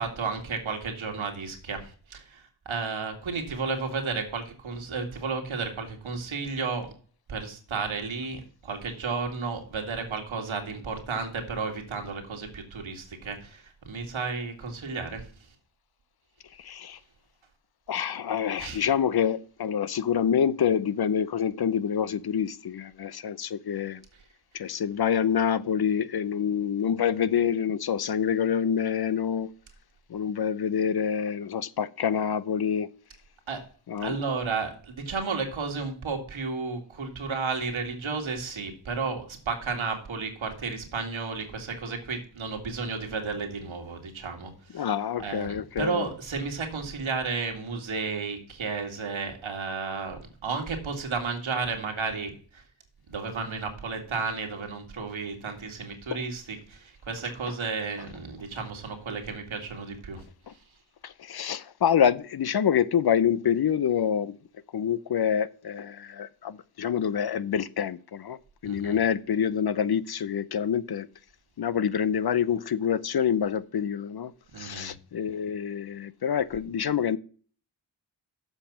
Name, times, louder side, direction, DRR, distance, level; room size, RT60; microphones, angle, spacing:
voice 1, 0.0-6.9 7.3-15.2 18.6-18.8 33.5-33.6 34.0-44.9 45.2-52.6 53.1-60.2 68.6-69.0 74.5-74.9, right 4 dB, 85° right, 2.3 m, -33 dB
voice 2, 16.6-17.0 17.9-24.0 24.5-29.5 30.1-32.9 33.9-34.2 44.7-46.1 61.0-64.4 64.7-68.4 68.6-71.1 71.6-74.3 74.6-77.2, left 8 dB, 55° left, 0.6 m, -26 dB
7.3 x 5.4 x 7.2 m
wide cardioid pair, 75°, 46 cm